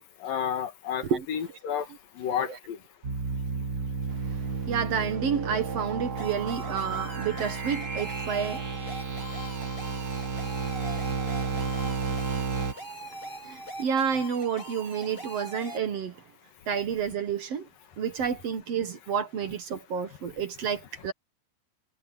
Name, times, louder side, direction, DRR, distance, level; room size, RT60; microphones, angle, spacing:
voice 1, 0.0-2.8, left 8 dB, 90° left, 3.7 m, -32 dB
sound 1, 3.0-12.7, right 5 dB, 30° right, 2.3 m, -32 dB
voice 2, 4.1-16.2 16.7-17.7 18.0-21.1, right 7 dB, 55° right, 2.0 m, -31 dB
sound 2, 6.2-15.8, equal, 15° left, 6.4 m, -42 dB
omnidirectional pair, 3.8 m